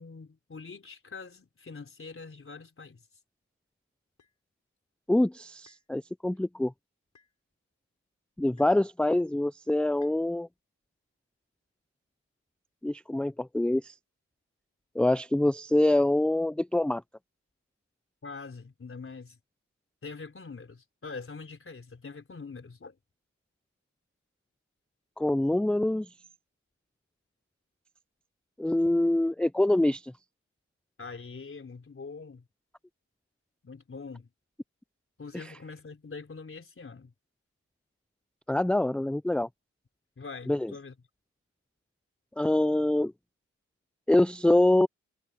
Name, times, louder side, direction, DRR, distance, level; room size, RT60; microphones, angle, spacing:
voice 1, 0.0-3.0 18.2-19.4 20.0-23.0 31.0-32.4 33.6-34.3 35.2-37.1 40.2-40.9, left 4 dB, 45° left, 4.1 m, -43 dB
sound 1, 4.2-4.4 5.7-5.9 7.1-7.4 8.6-8.9 10.0-10.2, left 6 dB, 70° left, 7.8 m, -63 dB
voice 2, 5.1-6.7 8.4-10.5 12.8-13.9 15.0-17.0 25.2-26.1 28.6-30.0 35.3-35.4 38.5-39.5 40.5-40.7 42.4-43.1 44.1-44.9, left 1 dB, 5° left, 0.4 m, -25 dB
cardioid pair, 55°, 30 cm